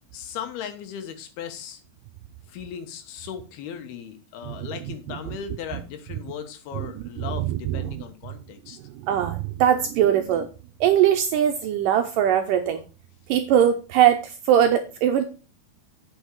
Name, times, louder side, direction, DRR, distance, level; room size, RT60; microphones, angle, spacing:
voice 1, 0.1-1.8 2.5-8.8, left 8 dB, 80° left, 8 dB, 3.1 m, -37 dB
voice 2, 4.5-5.4 6.8-6.9 7.2-8.0 8.8-10.5 10.8-12.8 13.3-15.2, right 10 dB, 80° right, 6 dB, 2.0 m, -21 dB
8.3 x 6.2 x 4.6 m, 0.33 s
omnidirectional pair, 4.5 m